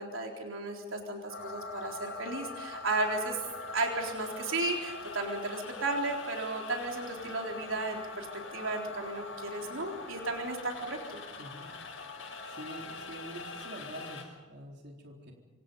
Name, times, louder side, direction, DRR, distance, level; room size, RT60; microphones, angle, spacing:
voice 1, 0.0-3.4 3.7-8.3 8.5-11.2, right 2 dB, 85° right, 1 dB, 3.9 m, -34 dB
sound 1, 1.3-14.2, left 3 dB, 75° left, 5.9 m, -43 dB
voice 2, 11.4-11.7 12.5-15.3, right 1 dB, 60° right, 0 dB, 4.0 m, -46 dB
26.5 x 26.5 x 5.5 m, 1.2 s
head